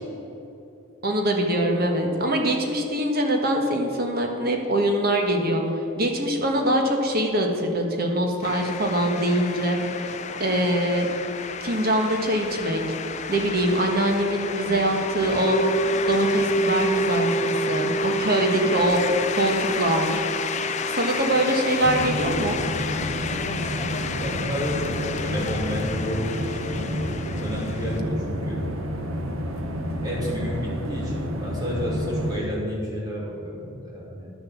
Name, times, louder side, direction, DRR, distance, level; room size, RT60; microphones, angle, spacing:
voice 1, 1.0-5.6 6.0-9.8 10.4-11.1 11.6-12.8 13.3-15.6 16.1-19.0 19.4-20.2 20.9-22.6, right 1 dB, 45° right, 2 dB, 1.5 m, -23 dB
sound 1, 8.4-28.0, left 6 dB, 35° left, 0.5 m, -31 dB
sound 2, 15.5-25.7 26.0-26.1, right 3 dB, 65° left, 0.8 m, -29 dB
sound 3, 21.8-32.4, equal, 85° right, 1.1 m, -30 dB
voice 2, 24.2-28.6 30.0-34.3, equal, 20° right, -5 dB, 2.9 m, -31 dB
10.5 x 7.0 x 7.3 m, 2.8 s
head